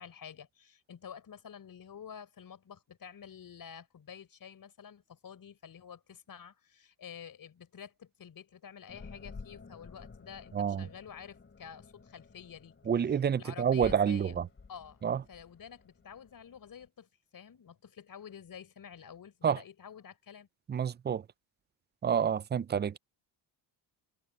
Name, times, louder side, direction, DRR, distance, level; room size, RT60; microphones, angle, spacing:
voice 1, 0.0-14.3 14.7-15.0 15.3-20.5, left 8 dB, 45° left, 4.8 m, -49 dB
sound 1, 8.9-16.9, left 4 dB, 25° left, 3.1 m, -52 dB
voice 2, 10.5-10.9 12.9-14.5 15.0-15.2 19.4-19.6 20.7-21.2 22.0-23.0, right 8 dB, 25° right, 0.5 m, -28 dB
cardioid pair, 100°, 48 cm